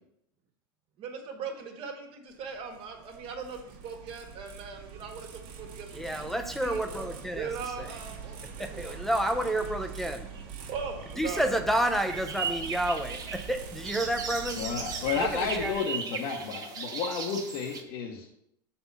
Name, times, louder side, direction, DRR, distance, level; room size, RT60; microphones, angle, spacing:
voice 1, 1.0-6.2 6.6-6.8 7.3-9.1 10.3-11.4, right 5 dB, 50° right, 3 dB, 1.6 m, -40 dB
sound 1, 2.3-15.7, right 6 dB, 65° right, 1.4 m, -44 dB
voice 2, 5.9-7.5 7.8-7.9 8.6-10.3 11.2-14.6 15.2-15.7, right 1 dB, ahead, 4 dB, 0.6 m, -30 dB
sound 2, 12.1-17.8, right 6 dB, 30° right, 1.1 m, -37 dB
voice 3, 14.6-18.3, left 6 dB, 65° left, -1 dB, 1.0 m, -32 dB
6.8 x 4.3 x 5.5 m, 0.79 s
supercardioid pair, 110°, 12 cm